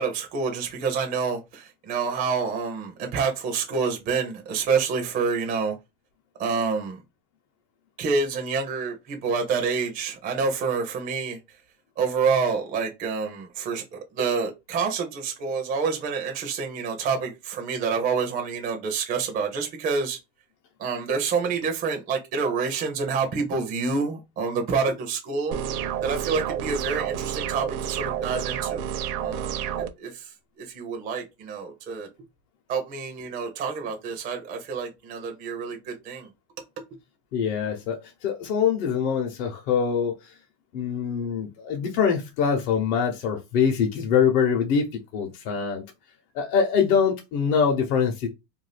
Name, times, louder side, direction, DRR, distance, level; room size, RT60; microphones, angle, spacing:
voice 1, 0.0-5.7 6.4-7.0 8.0-11.4 12.0-13.8 14.1-20.2 20.8-25.6 26.0-28.9 29.2-29.6 30.0-30.1 30.7-32.1 32.7-36.3, right 5 dB, 20° right, 0.4 m, -27 dB
sound 1, 25.5-29.9, right 9 dB, 70° right, 0.7 m, -30 dB
voice 2, 37.3-40.3 40.7-45.8 46.3-48.3, left 6 dB, 60° left, 0.9 m, -24 dB
2.6 x 2.3 x 3.2 m
supercardioid pair, 140°, 49 cm